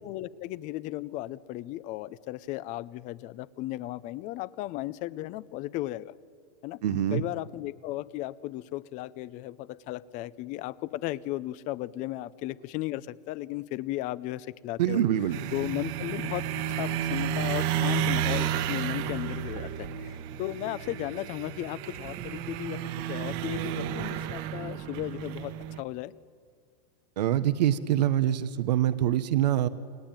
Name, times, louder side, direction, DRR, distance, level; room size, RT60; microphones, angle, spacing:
voice 1, 0.0-6.1 6.6-6.8 7.1-15.0 15.5-16.4 16.8-26.1, left 16 dB, 35° left, 19 dB, 0.7 m, -35 dB
voice 2, 6.8-7.2 14.8-15.4 27.2-29.7, right 11 dB, 85° right, 12 dB, 1.2 m, -25 dB
sound 1, 15.3-25.8, right 9 dB, 45° right, 1.4 m, -32 dB
29.0 x 20.5 x 9.1 m, 2.2 s
supercardioid pair, 145°, 21 cm